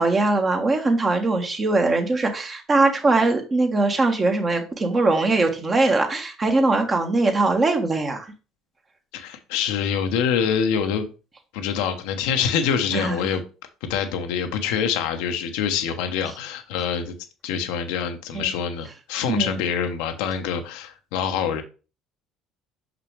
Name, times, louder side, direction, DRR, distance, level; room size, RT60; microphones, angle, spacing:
voice 1, 0.0-8.3 12.9-13.4 18.3-18.5 19.3-19.6, right 3 dB, 30° right, 1.5 m, -21 dB
voice 2, 9.1-11.1 11.5-13.4 13.8-17.2 17.4-21.6, left 7 dB, 65° left, 0.9 m, -25 dB
5.9 x 5.9 x 3.3 m
figure-of-eight pair, 55°, 0 cm